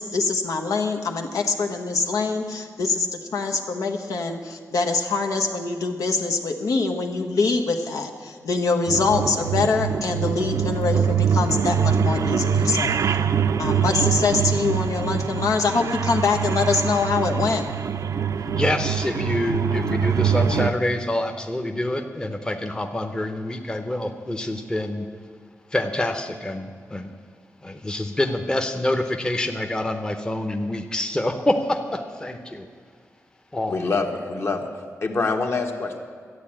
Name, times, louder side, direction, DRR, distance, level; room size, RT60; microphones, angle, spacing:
voice 1, 0.0-13.0 13.6-17.7, left 4 dB, 85° left, 3 dB, 1.2 m, -24 dB
sound 1, 8.9-20.7, right 7 dB, 70° right, 0.5 m, -23 dB
voice 2, 18.5-25.1 25.7-27.1 27.6-32.7 33.5-33.8, left 1 dB, 15° left, 5 dB, 0.8 m, -26 dB
voice 3, 33.7-34.7 35.0-36.0, left 3 dB, 50° left, 3 dB, 1.4 m, -25 dB
12.5 x 9.1 x 8.8 m, 2.1 s
wide cardioid pair, 135°, 6 cm